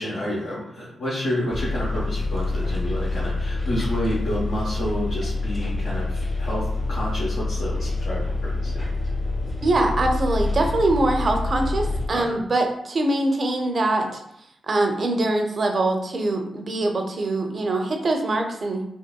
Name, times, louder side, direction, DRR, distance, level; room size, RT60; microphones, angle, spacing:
voice 1, 0.0-8.7 12.1-12.4, equal, 70° left, -8 dB, 0.9 m, -29 dB
Bus, 1.5-12.1, left 2 dB, 35° left, 1.1 m, -26 dB
voice 2, 9.6-14.2 14.7-18.8, right 2 dB, 55° right, 3 dB, 0.6 m, -23 dB
3.7 x 2.5 x 2.2 m, 0.76 s
supercardioid pair, 40°, 0 cm